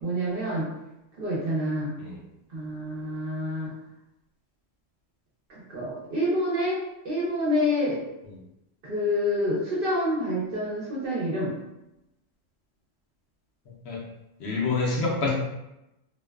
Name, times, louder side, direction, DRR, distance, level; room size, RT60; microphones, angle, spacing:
voice 1, 0.0-0.7 1.2-1.9 2.5-3.7 5.5-8.0 8.8-11.5, left 1 dB, 55° right, -6 dB, 0.8 m, -27 dB
voice 2, 14.4-15.3, left 3 dB, 65° left, -4 dB, 0.8 m, -26 dB
2.4 x 2.2 x 2.2 m, 0.90 s
omnidirectional pair, 1.3 m